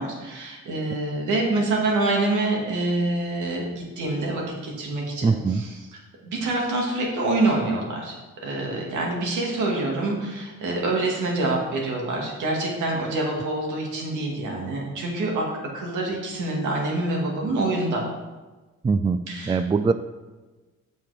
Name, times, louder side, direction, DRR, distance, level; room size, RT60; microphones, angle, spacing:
voice 1, 0.0-8.2 8.4-15.5 15.7-18.0 19.3-19.6, right 2 dB, 80° right, -1 dB, 2.3 m, -26 dB
voice 2, 5.2-5.6 18.8-19.2 19.5-19.9, right 4 dB, 15° right, 12 dB, 0.3 m, -21 dB
7.6 x 5.4 x 5.0 m, 1.2 s
cardioid pair, 90°, 30 cm